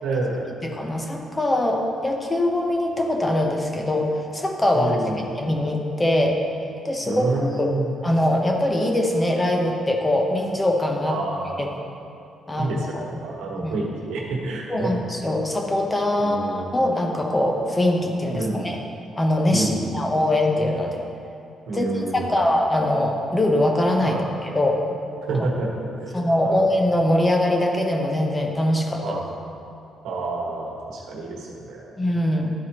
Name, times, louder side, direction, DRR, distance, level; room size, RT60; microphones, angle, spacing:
voice 1, 0.0-0.5 4.7-5.3 7.0-7.9 11.0-11.6 12.6-14.9 16.2-16.7 18.3-18.7 19.5-20.1 21.7-22.4 24.0-24.2 25.3-26.6 29.0-29.3 30.0-32.0, right 2 dB, 90° right, -2 dB, 1.3 m, -28 dB
voice 2, 0.6-6.4 6.8-7.7 8.0-11.2 11.6-11.7 12.5-13.0 13.6-13.8 14.7-18.8 19.2-21.0 21.7-21.9 22.1-24.8 26.1-29.2 32.0-32.5, left 1 dB, 15° left, 1 dB, 0.9 m, -22 dB
11.5 x 4.6 x 3.0 m, 2.6 s
cardioid pair, 90°, 0 cm